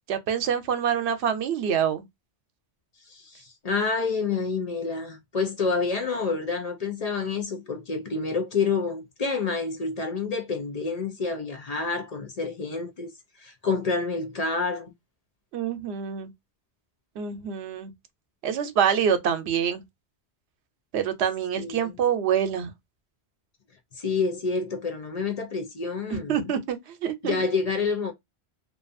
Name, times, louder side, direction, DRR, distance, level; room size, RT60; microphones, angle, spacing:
voice 1, 0.1-2.0 15.5-16.3 17.2-17.9 18.4-19.8 20.9-22.7 26.1-27.4, right 8 dB, 90° right, 0.9 m, -26 dB
voice 2, 3.0-14.9 21.6-22.0 24.0-26.4 27.2-28.1, left 4 dB, 50° left, 0.5 m, -28 dB
2.5 x 2.3 x 2.5 m
omnidirectional pair, 1.1 m